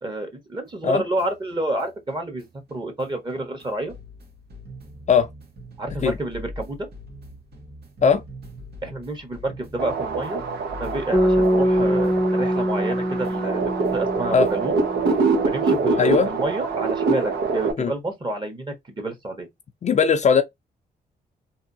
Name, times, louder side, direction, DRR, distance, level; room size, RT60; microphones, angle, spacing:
voice 1, 0.0-3.9 5.8-6.9 8.8-10.4 10.8-14.7 15.4-19.5, right 2 dB, 25° right, 1.4 m, -29 dB
sound 1, 0.7-12.9 13.2-16.0, left 1 dB, 70° right, 1.4 m, -43 dB
sound 2, 9.8-17.7, right 4 dB, 90° right, 1.1 m, -25 dB
sound 3, 11.1-15.3, equal, 10° right, 0.8 m, -23 dB
voice 2, 16.0-16.3 17.8-17.9 19.8-20.4, left 6 dB, 45° left, 0.5 m, -18 dB
3.5 x 2.7 x 2.7 m
cardioid pair, 115°, 17 cm